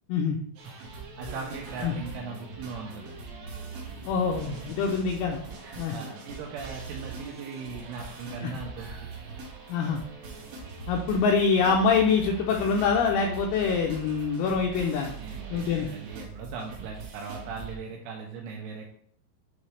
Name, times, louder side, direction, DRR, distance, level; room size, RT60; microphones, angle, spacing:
sound 1, 0.5-17.8, right 4 dB, 70° right, 2.3 m, -41 dB
voice 1, 1.2-3.1 5.6-9.1 15.2-18.9, right 5 dB, 85° right, 1 dB, 2.9 m, -39 dB
voice 2, 4.1-5.4 5.8-5.9 8.4-8.5 9.7-10.0 10.9-15.1 15.5-15.9, left 5 dB, 85° left, 1 dB, 2.8 m, -25 dB
9.3 x 3.2 x 3.2 m, 0.65 s
omnidirectional pair, 6.0 m